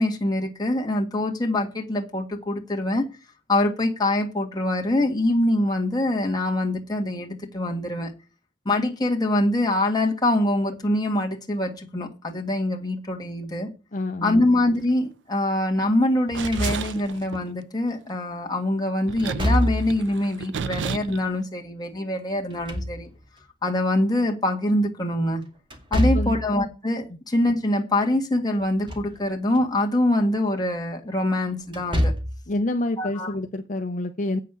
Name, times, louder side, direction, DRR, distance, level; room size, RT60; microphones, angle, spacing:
voice 1, 0.0-3.0 3.5-8.1 8.6-13.7 14.2-23.1 23.6-25.4 25.9-32.1 33.0-33.3, left 1 dB, 25° left, 1 dB, 1.8 m, -24 dB
voice 2, 13.9-14.5 26.1-26.4 27.1-27.2 32.5-34.4, left 1 dB, 45° left, 6 dB, 0.7 m, -28 dB
Slam / Thump thud, 16.3-17.2 19.2-20.1 22.3-23.4 25.7-26.5 28.6-29.2 29.5-29.6 31.7-32.5, equal, 30° right, 2.4 m, -26 dB
sound 1, 16.3-17.5 19.1-21.3, right 6 dB, 85° right, 0.5 m, -33 dB
8.4 x 6.6 x 6.9 m, 0.32 s
head